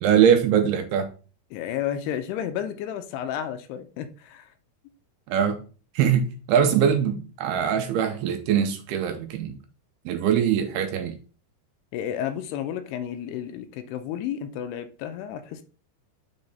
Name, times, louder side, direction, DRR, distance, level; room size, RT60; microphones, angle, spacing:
voice 1, 0.0-1.1 5.3-5.6 6.0-9.6 10.1-11.1, right 8 dB, 85° right, 2.4 m, -22 dB
voice 2, 1.5-4.5 11.9-15.6, left 10 dB, 80° left, 2.6 m, -32 dB
7.1 x 3.2 x 5.3 m
omnidirectional pair, 4.9 m